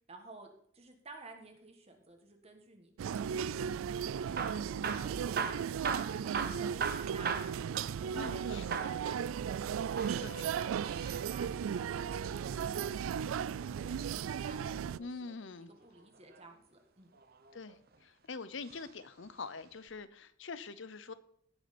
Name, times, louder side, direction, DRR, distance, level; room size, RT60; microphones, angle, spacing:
voice 1, 0.1-0.5 0.7-3.6 6.2-7.5 7.8-9.6 9.9-11.5 11.7-15.3 15.8-17.1, right 2 dB, 30° right, 3 dB, 1.6 m, -55 dB
sound 1, 3.0-15.0, right 7 dB, 80° right, 0.3 m, -36 dB
Hammer / Drill, 4.2-8.4 8.7-9.0 9.8-11.3 13.0-14.3 16.0-16.4 17.1-18.0 18.6-18.9 19.2-19.3 19.9-20.0, right 6 dB, 50° right, 0.9 m, -39 dB
voice 2, 8.1-8.8 10.2-10.5 15.0-15.7 17.5-21.1, left 4 dB, 65° left, 15 dB, 0.7 m, -44 dB
17.5 x 6.2 x 4.3 m, 0.66 s
head